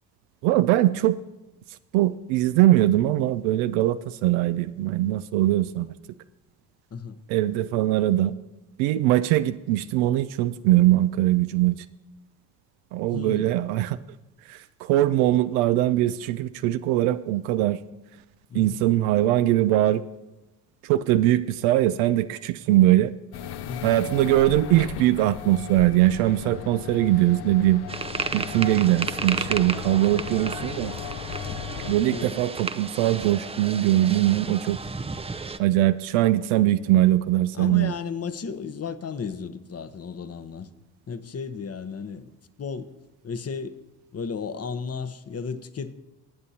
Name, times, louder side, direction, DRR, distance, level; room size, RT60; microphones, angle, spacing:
voice 1, 0.4-1.2 1.9-5.9 7.3-8.3 8.8-11.8 12.9-14.0 14.5-17.8 18.5-20.0 20.8-23.1 23.8-27.8 28.3-30.9 31.9-34.8 35.6-37.9, right 14 dB, 80° right, 0.5 m, -21 dB
voice 2, 13.1-13.5 18.5-18.8 23.6-23.9 28.9-29.0 32.1-32.4 37.5-40.7 41.1-42.3 42.6-42.9 43.2-43.8 44.1-45.9, left 5 dB, 30° left, 0.9 m, -34 dB
sound 1, 23.3-31.9, left 10 dB, 55° left, 0.7 m, -36 dB
sound 2, 27.9-35.6, right 4 dB, 15° right, 0.5 m, -33 dB
20.0 x 8.9 x 2.8 m
hypercardioid pair, 60°, 47 cm